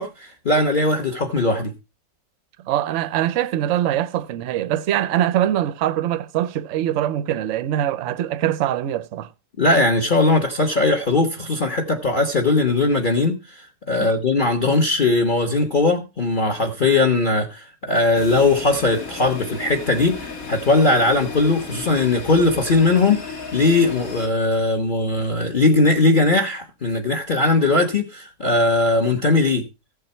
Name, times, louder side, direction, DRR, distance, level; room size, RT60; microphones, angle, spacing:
voice 1, 0.0-1.7 9.6-29.6, left 2 dB, 30° left, 1.2 m, -19 dB
voice 2, 2.6-9.3 14.0-14.1, right 12 dB, 60° right, 0.8 m, -23 dB
sound 1, 18.1-24.3, left 4 dB, 50° left, 2.2 m, -34 dB
15.5 x 7.4 x 4.3 m
omnidirectional pair, 1.9 m